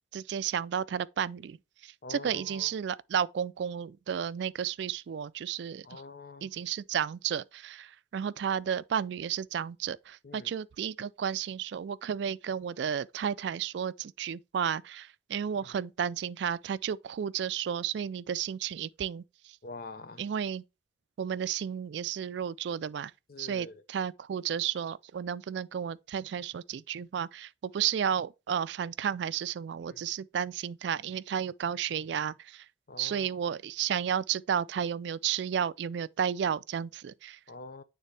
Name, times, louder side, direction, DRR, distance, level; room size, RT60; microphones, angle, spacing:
voice 1, 0.1-1.6 1.8-6.0 6.4-19.6 20.2-20.6 21.2-23.1 23.4-32.7 33.0-37.4, right 8 dB, 65° right, 0.3 m, -32 dB
voice 2, 2.0-2.7 5.8-6.5 10.2-10.5 15.6-15.7 19.6-20.2 23.3-23.8 29.9-30.0 32.9-33.4 37.5-37.8, left 3 dB, 50° left, 0.6 m, -45 dB
9.1 x 3.6 x 3.3 m
head